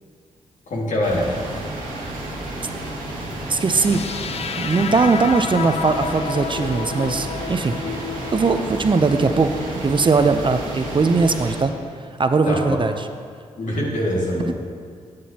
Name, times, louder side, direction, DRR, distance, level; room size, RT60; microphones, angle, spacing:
voice 1, 0.7-1.2 12.5-12.8 13.6-14.5, left 1 dB, 65° left, -3 dB, 2.0 m, -23 dB
sound 1, 1.0-11.6, right 1 dB, 85° right, 1.7 m, -31 dB
voice 2, 3.5-4.0 4.6-8.0 8.3-11.7 12.2-13.1 14.5-14.6, right 4 dB, 35° right, 8 dB, 0.5 m, -20 dB
sound 2, 3.6-11.6, left 7 dB, 50° left, 0.4 m, -32 dB
11.0 x 7.6 x 2.9 m, 2.2 s
supercardioid pair, 40°, 14 cm